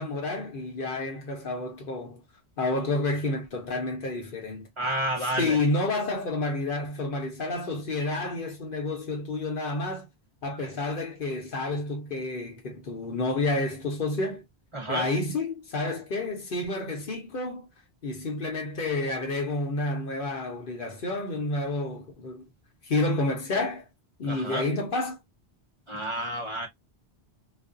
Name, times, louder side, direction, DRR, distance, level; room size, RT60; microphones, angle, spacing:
voice 1, 0.0-2.2 2.6-4.7 5.2-10.1 10.4-14.5 14.9-17.7 18.0-22.5 22.8-23.9 24.2-25.2, left 2 dB, 55° left, 0.8 m, -30 dB
voice 2, 4.8-5.6 14.7-15.1 24.3-24.6 25.9-26.7, right 1 dB, 35° right, 0.7 m, -30 dB
2.4 x 2.1 x 2.4 m
omnidirectional pair, 1.1 m